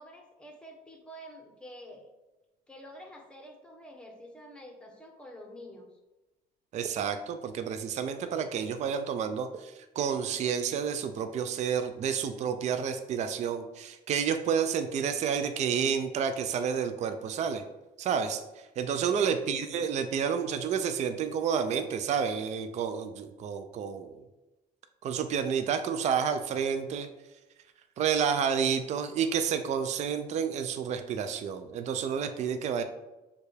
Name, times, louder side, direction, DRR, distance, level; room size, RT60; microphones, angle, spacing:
voice 1, 0.0-2.1 2.7-5.9 19.1-19.4, equal, 5° left, 2 dB, 0.8 m, -47 dB
voice 2, 6.7-17.6 18.0-18.4 18.8-24.2 25.0-27.1 28.0-32.8, right 7 dB, 45° right, 8 dB, 0.4 m, -30 dB
6.6 x 2.3 x 3.3 m, 1.0 s
cardioid pair, 110°, 17 cm